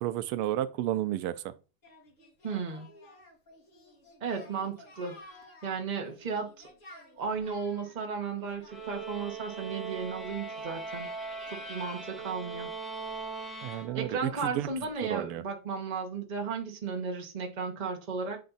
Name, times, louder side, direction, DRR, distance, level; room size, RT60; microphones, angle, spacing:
voice 1, 0.0-1.3 13.6-14.3 14.6-14.7 15.1-15.4, right 13 dB, 85° right, 1.5 m, -31 dB
Singing, 1.8-10.2, left 2 dB, 35° left, 2.4 m, -54 dB
voice 2, 2.4-2.9 4.2-5.2 5.6-6.7 7.2-11.1 11.5-12.7 13.9-18.4, right 5 dB, 30° right, 0.9 m, -34 dB
sound 1, 8.7-14.4, right 4 dB, ahead, 1.1 m, -40 dB
8.5 x 3.4 x 4.0 m
omnidirectional pair, 2.4 m